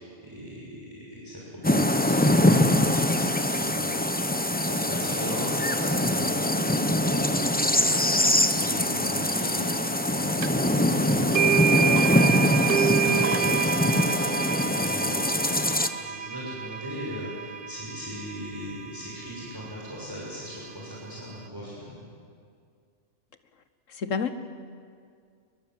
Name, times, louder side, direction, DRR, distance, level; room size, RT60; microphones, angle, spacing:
voice 1, 0.0-15.4 15.9-22.1, equal, 15° right, -6 dB, 6.4 m, -39 dB
sound 1, 1.6-15.9, left 1 dB, 10° left, 0.7 m, -23 dB
sound 2, 10.4-10.5 11.3-19.4, right 8 dB, 50° right, 0.8 m, -28 dB
voice 2, 24.0-24.4, left 5 dB, 70° left, 10 dB, 1.6 m, -30 dB
27.5 x 22.0 x 7.8 m, 2.2 s
omnidirectional pair, 1.4 m